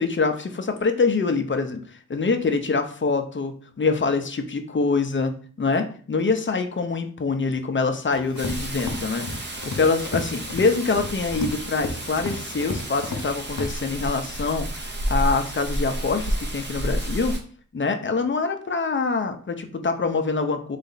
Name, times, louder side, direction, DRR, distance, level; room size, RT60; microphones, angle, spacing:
voice 1, 0.0-1.8 2.1-9.3 9.6-17.4 17.7-20.8, left 4 dB, 35° left, 6 dB, 0.6 m, -25 dB
Run, 8.1-13.3 13.6-13.7, left 3 dB, 65° left, 0.9 m, -33 dB
Rain, 8.4-17.4, right 1 dB, 35° right, 0.8 m, -31 dB
4.1 x 3.3 x 3.9 m, 0.43 s
wide cardioid pair, 110°, 32 cm